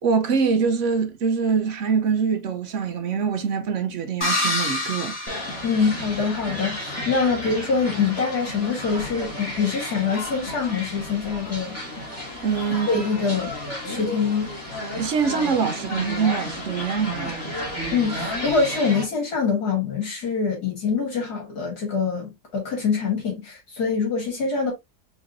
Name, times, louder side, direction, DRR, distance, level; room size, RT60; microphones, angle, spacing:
voice 1, 0.0-5.1 12.4-13.0 15.0-17.4, right 5 dB, 55° right, 1.0 m, -24 dB
sound 1, 4.2-6.4, left 1 dB, 55° left, 2.3 m, -27 dB
sound 2, 5.3-19.0, left 1 dB, 10° left, 2.3 m, -33 dB
voice 2, 5.6-11.8 12.9-13.5 13.8-14.5 17.9-24.7, left 5 dB, 70° left, 2.5 m, -24 dB
5.0 x 3.8 x 2.6 m
omnidirectional pair, 1.7 m